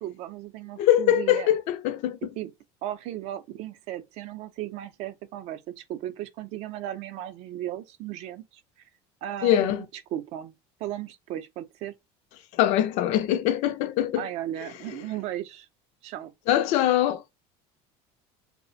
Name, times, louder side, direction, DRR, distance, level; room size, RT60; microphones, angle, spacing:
voice 1, 0.0-1.5 2.4-2.5 2.8-8.5 9.2-10.5 10.8-11.9 14.2-15.7 16.0-16.3, right 12 dB, 55° right, 0.4 m, -36 dB
voice 2, 0.8-2.3 9.4-9.8 12.5-14.3 16.5-17.2, left 12 dB, 60° left, 0.4 m, -23 dB
2.4 x 2.0 x 2.5 m
cardioid pair, 155°, 13 cm